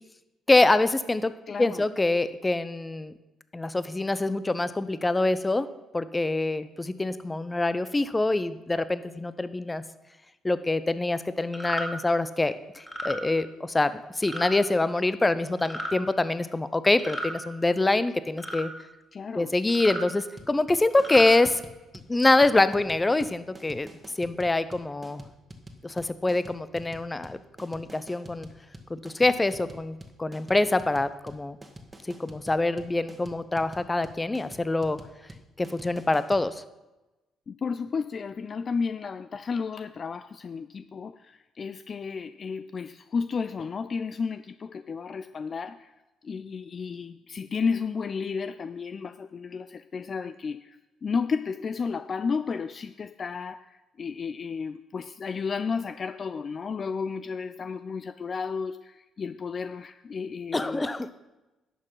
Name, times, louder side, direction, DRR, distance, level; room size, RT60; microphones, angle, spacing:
voice 1, 0.5-1.3 1.6-3.1 3.5-5.7 5.9-9.8 10.4-18.7 19.3-21.6 22.1-23.9 24.2-25.2 25.8-28.5 28.9-31.6 32.1-35.0 35.6-36.6 60.5-61.1, left 2 dB, 20° left, 14 dB, 0.7 m, -25 dB
voice 2, 1.5-1.8 19.1-19.5 37.5-45.9 46.2-60.8, left 5 dB, 45° left, 12 dB, 0.3 m, -32 dB
sound 1, 11.5-11.9 12.8-13.2 14.2-14.5 15.6-15.9 17.0-17.4 18.4-18.7 19.7-20.0 20.9-21.3, equal, 10° right, 2.1 m, -34 dB
sound 2, 20.4-36.5, right 1 dB, 25° right, 1.6 m, -46 dB
11.0 x 6.6 x 5.6 m, 1.0 s
hypercardioid pair, 45°, 0 cm